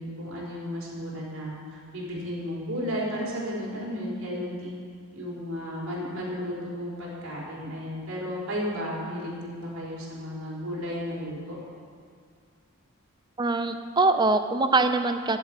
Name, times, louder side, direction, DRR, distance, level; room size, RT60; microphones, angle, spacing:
voice 1, 0.0-4.7 5.1-11.6, equal, 70° right, -5 dB, 4.1 m, -33 dB
voice 2, 13.4-15.4, right 3 dB, 20° right, 8 dB, 0.6 m, -23 dB
13.0 x 7.4 x 8.2 m, 2.1 s
head